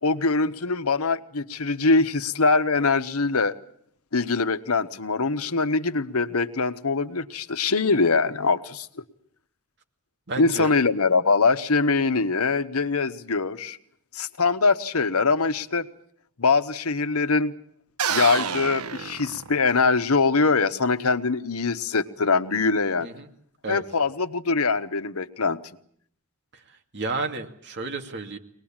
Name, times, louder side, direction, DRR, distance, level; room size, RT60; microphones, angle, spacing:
voice 1, 0.0-3.6 4.1-8.9 10.4-13.8 14.1-15.9 16.4-17.5 18.1-23.1 23.7-25.6, left 4 dB, 80° left, 1.2 m, -23 dB
voice 2, 10.3-10.7 23.0-23.3 23.6-23.8 26.9-28.4, right 3 dB, 55° right, 2.5 m, -31 dB
sound 1, 18.0-19.9, right 7 dB, 90° right, 1.1 m, -29 dB
24.0 x 20.0 x 8.8 m
head